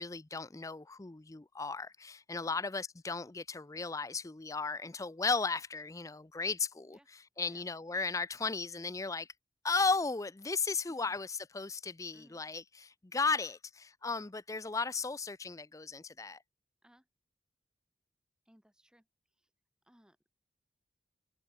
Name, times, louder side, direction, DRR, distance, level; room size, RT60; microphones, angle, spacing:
voice 1, 0.0-7.0 7.4-9.3 9.6-16.4, left 4 dB, 20° left, 0.5 m, -35 dB
voice 2, 18.5-19.1 19.4-19.5 19.8-20.2, equal, 5° right, 4.2 m, -63 dB
head